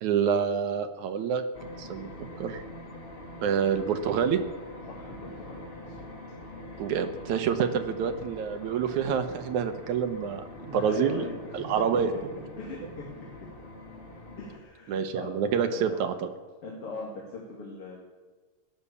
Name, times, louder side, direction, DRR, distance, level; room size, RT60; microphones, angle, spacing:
voice 1, 0.0-1.4 1.8-2.1 2.4-2.6 3.4-4.4 6.8-11.2 11.5-12.1 14.9-16.3, right 7 dB, 70° right, 7 dB, 2.3 m, -27 dB
sound 1, 1.5-14.6, left 1 dB, 20° left, 1.5 m, -44 dB
voice 2, 4.9-6.1 10.6-11.3 11.6-11.7 11.9-12.2 12.6-13.3 14.4-15.3 15.7-16.0 16.6-18.0, left 3 dB, 45° left, -2 dB, 3.2 m, -40 dB
17.5 x 11.5 x 7.0 m, 1.4 s
omnidirectional pair, 3.9 m